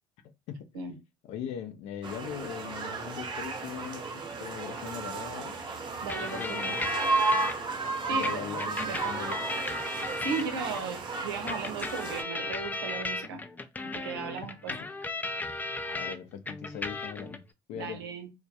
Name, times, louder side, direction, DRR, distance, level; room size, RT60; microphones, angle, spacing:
voice 1, 1.2-5.6 6.0-6.8 8.0-9.5 10.6-10.9 14.7-14.9 15.7-17.4 17.7-18.0, left 9 dB, 65° left, 0.5 m, -40 dB
sound 1, 2.0-12.2, right 3 dB, 40° right, 0.6 m, -33 dB
voice 2, 6.0-6.8 8.1-8.4 8.6-9.0 10.2-13.4 13.8-14.7 17.7-18.3, right 5 dB, 85° right, 0.5 m, -36 dB
sound 2, 6.1-7.5 8.2-10.8 11.5-16.2 16.5-17.4, left 2 dB, 15° left, 0.4 m, -35 dB
2.1 x 2.1 x 2.7 m
hypercardioid pair, 70°, 12 cm